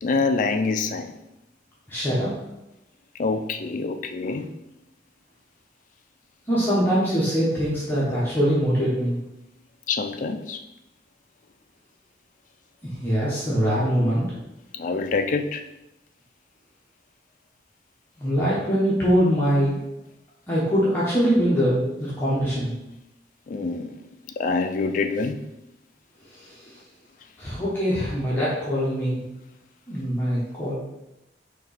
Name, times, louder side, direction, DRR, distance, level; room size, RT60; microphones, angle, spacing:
voice 1, 0.0-1.1 3.2-4.5 9.9-10.6 14.7-15.6 23.5-23.9 24.4-25.4, left 4 dB, 45° left, 6 dB, 0.3 m, -25 dB
voice 2, 1.9-2.3 6.5-9.2 12.8-14.2 18.2-19.8 20.5-22.7 26.3-26.7 27.4-29.2 29.9-30.7, equal, 10° left, -9 dB, 0.9 m, -23 dB
4.4 x 2.9 x 4.0 m, 0.91 s
head